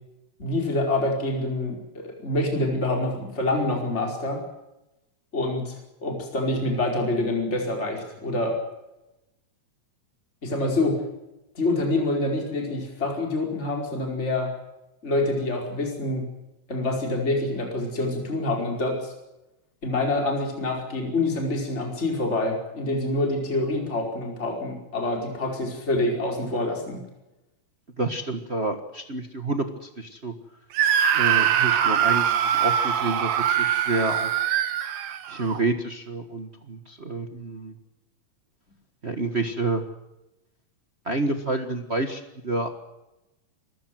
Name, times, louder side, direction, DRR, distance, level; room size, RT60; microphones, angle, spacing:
voice 1, 0.4-4.4 5.3-8.6 10.4-11.0 11.5-14.5 15.0-16.3 16.7-19.1 19.8-27.0, left 2 dB, 20° left, 1 dB, 4.9 m, -26 dB
voice 2, 28.0-30.3 31.1-34.3 35.3-37.7 39.0-39.8 41.0-42.8, right 2 dB, 55° right, 6 dB, 0.7 m, -29 dB
Screaming, 30.8-35.6, right 9 dB, 90° right, 3.2 m, -23 dB
27.5 x 15.5 x 7.7 m, 0.95 s
omnidirectional pair, 3.9 m